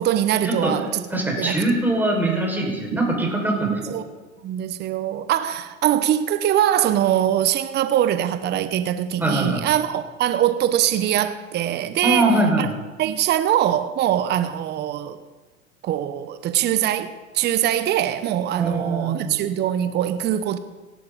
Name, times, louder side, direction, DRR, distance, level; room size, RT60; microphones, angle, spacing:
voice 1, 0.0-1.0 1.4-1.6 3.5-4.0 4.4-12.7 13.0-15.2 15.8-20.6, right 11 dB, 25° right, 1.0 m, -22 dB
voice 2, 1.1-4.0 9.2-9.7 12.0-12.6 18.6-19.4, right 2 dB, 5° right, 5.5 m, -22 dB
27.5 x 12.0 x 4.1 m
figure-of-eight pair, 100°, 41 cm